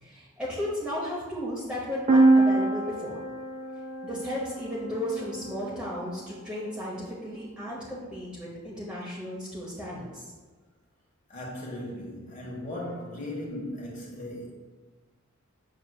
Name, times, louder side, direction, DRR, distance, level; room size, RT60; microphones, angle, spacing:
voice 1, 0.0-3.2 4.0-10.2, equal, 5° right, -7 dB, 1.0 m, -34 dB
sound 1, 2.1-5.8, right 2 dB, 35° right, 0.5 m, -25 dB
voice 2, 11.3-14.5, left 1 dB, 40° left, -3 dB, 1.4 m, -37 dB
7.1 x 6.3 x 2.3 m, 1.3 s
head